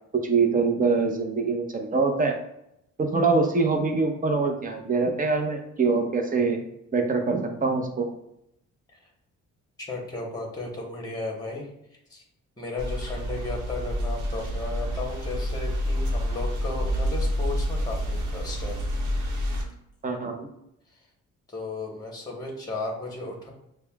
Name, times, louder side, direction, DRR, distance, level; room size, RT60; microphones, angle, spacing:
voice 1, 0.2-2.3 3.0-6.6 6.9-8.1 20.0-20.5, right 4 dB, 25° right, 3 dB, 0.7 m, -24 dB
voice 2, 9.9-11.7 12.1-12.2 12.6-18.8 21.5-23.5, left 2 dB, 15° left, -1 dB, 1.1 m, -35 dB
sound 1, 12.8-19.6, equal, 75° right, 1.0 m, -28 dB
6.4 x 2.2 x 2.3 m, 0.79 s
cardioid pair, 90°, 30 cm